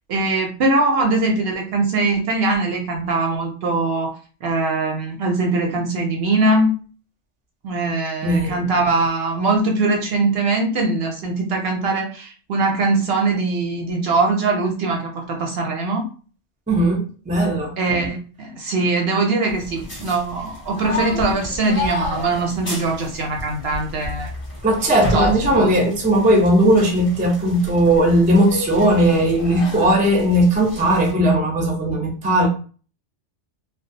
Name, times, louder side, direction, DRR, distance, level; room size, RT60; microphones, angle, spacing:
voice 1, 0.1-4.2 4.4-6.8 7.6-16.1 17.8-24.3 25.1-25.7, right 3 dB, 65° right, 2 dB, 0.7 m, -21 dB
voice 2, 8.2-8.6 16.7-17.8 24.6-32.5, right 1 dB, 10° right, 0 dB, 0.3 m, -17 dB
sound 1, 19.5-31.1, left 2 dB, 30° left, 0.9 m, -31 dB
2.2 x 2.2 x 2.7 m, 0.38 s
omnidirectional pair, 1.3 m